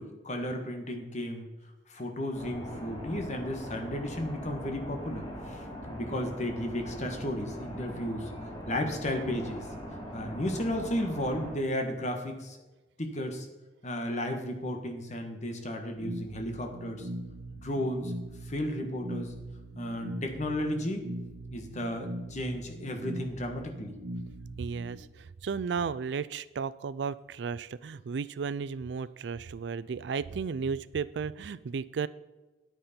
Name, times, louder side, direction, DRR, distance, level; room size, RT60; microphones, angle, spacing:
voice 1, 0.0-1.5 1.9-8.3 8.7-9.7 10.1-12.6 13.0-13.5 13.8-17.1 17.5-18.1 18.4-19.3 19.8-21.1 21.5-23.9, left 1 dB, 45° left, 4 dB, 1.5 m, -34 dB
sound 1, 2.3-11.5, equal, 25° left, 3.0 m, -41 dB
sound 2, 16.0-25.0, right 1 dB, 50° right, 1.0 m, -41 dB
voice 2, 24.6-32.1, right 5 dB, 75° right, 17 dB, 0.4 m, -34 dB
9.5 x 8.9 x 4.4 m, 1.1 s
head